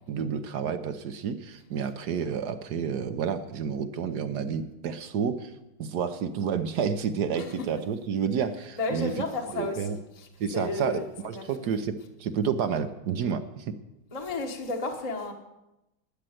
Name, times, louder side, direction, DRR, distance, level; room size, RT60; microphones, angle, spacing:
voice 1, 0.1-5.5 5.8-9.1 9.5-10.0 10.4-13.7, right 7 dB, 65° right, 9 dB, 1.2 m, -30 dB
voice 2, 8.8-10.3 10.5-11.0 11.3-11.5 14.1-15.3, left 2 dB, 20° left, 1 dB, 1.2 m, -32 dB
12.0 x 9.0 x 7.7 m, 0.93 s
omnidirectional pair, 2.0 m